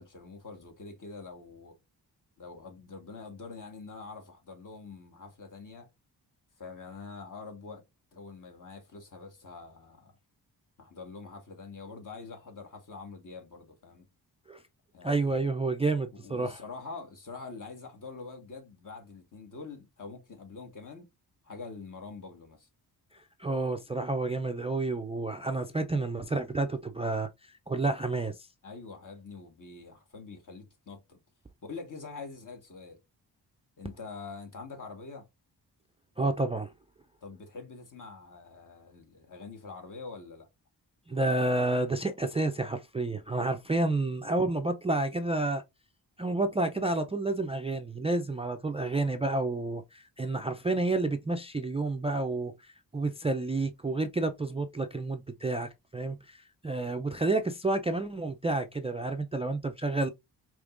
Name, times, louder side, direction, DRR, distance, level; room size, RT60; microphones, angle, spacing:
voice 1, 0.0-1.8 2.4-5.9 6.6-7.8 8.1-10.1 10.8-14.0 14.9-15.5 16.1-21.1 21.4-22.7 28.6-31.2 31.6-33.0 33.8-35.3 37.2-40.5, left 4 dB, 50° left, 1.5 m, -45 dB
voice 2, 15.0-16.6 23.1-28.5 36.2-36.7 41.1-45.6 46.2-60.1, right 2 dB, 15° right, 0.3 m, -30 dB
5.0 x 3.0 x 2.4 m
wide cardioid pair, 100°, 40 cm